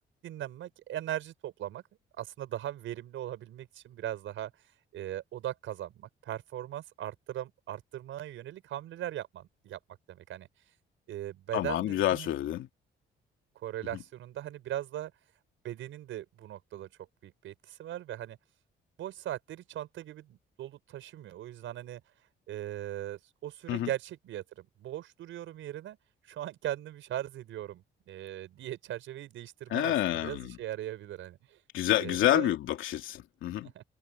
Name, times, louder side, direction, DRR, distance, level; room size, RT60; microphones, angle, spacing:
voice 1, 0.2-1.8 2.2-4.5 4.9-9.8 10.1-10.5 11.1-12.4 13.5-15.1 15.6-16.9 17.2-18.4 19.0-22.0 22.5-26.0 26.2-31.6 32.0-32.5 33.7-33.8, right 12 dB, 80° right, 6.0 m, -39 dB
voice 2, 11.5-12.7 23.7-23.9 29.7-30.6 31.7-33.7, left 13 dB, 85° left, 2.7 m, -28 dB
cardioid pair, 90°, 20 cm